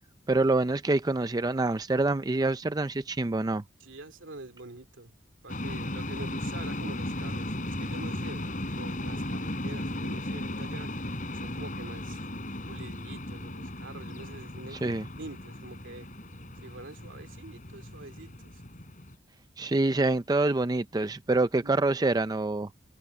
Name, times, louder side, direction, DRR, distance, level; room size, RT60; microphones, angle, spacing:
voice 1, 0.3-3.6 14.7-15.1 19.6-22.7, right 2 dB, 20° right, 0.4 m, -26 dB
voice 2, 3.8-5.1 5.4-10.9 11.3-12.3 12.7-16.1 16.6-18.6 21.6-21.9, right 2 dB, 80° right, 2.5 m, -46 dB
sound 1, 5.5-19.2, left 1 dB, 40° left, 4.6 m, -36 dB
head